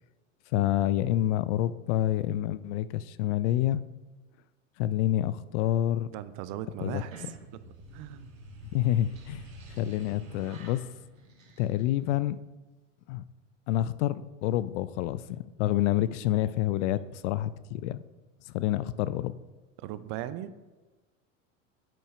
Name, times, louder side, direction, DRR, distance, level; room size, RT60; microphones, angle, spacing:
voice 1, 0.5-3.8 4.8-6.1 6.8-7.0 8.7-9.5 9.8-10.8 11.6-12.4 13.1-13.2 13.7-18.0 18.5-19.3, left 13 dB, 65° left, 16 dB, 0.5 m, -28 dB
voice 2, 6.1-8.3 19.8-20.5, right 12 dB, 50° right, 13 dB, 0.6 m, -39 dB
sound 1, 6.9-12.2, right 1 dB, 90° right, 1.5 m, -49 dB
7.7 x 5.0 x 4.8 m, 1.2 s
hypercardioid pair, 95°, 39 cm